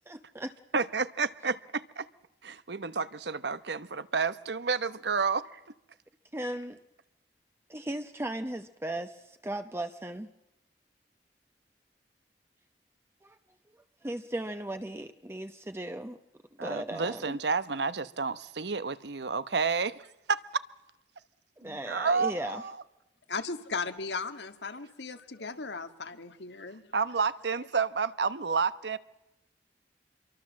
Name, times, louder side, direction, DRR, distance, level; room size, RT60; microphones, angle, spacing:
voice 1, 0.1-0.5 6.3-6.8 7.7-10.3 13.2-13.4 14.0-16.2 16.6-17.4 21.6-22.6, right 1 dB, 15° right, 0.9 m, -37 dB
voice 2, 0.7-2.1 2.4-5.6 16.6-20.6 21.6-22.8 26.9-29.0, right 5 dB, 70° right, 1.0 m, -30 dB
voice 3, 23.3-26.8, left 4 dB, 80° left, 1.9 m, -37 dB
27.0 x 23.5 x 7.5 m
head